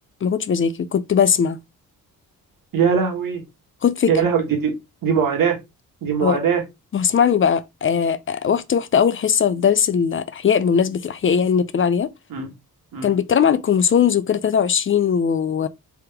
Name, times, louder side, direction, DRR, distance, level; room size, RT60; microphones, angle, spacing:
voice 1, 0.2-1.6 3.8-4.1 6.2-6.4 6.9-12.1 13.0-15.7, left 7 dB, 35° left, 0.4 m, -19 dB
voice 2, 2.7-3.4 4.1-4.7 5.0-5.6 6.0-6.6 12.3-12.5 12.9-13.1, right 6 dB, 70° right, 1.5 m, -20 dB
3.5 x 2.9 x 3.3 m
cardioid pair, 80°, 35 cm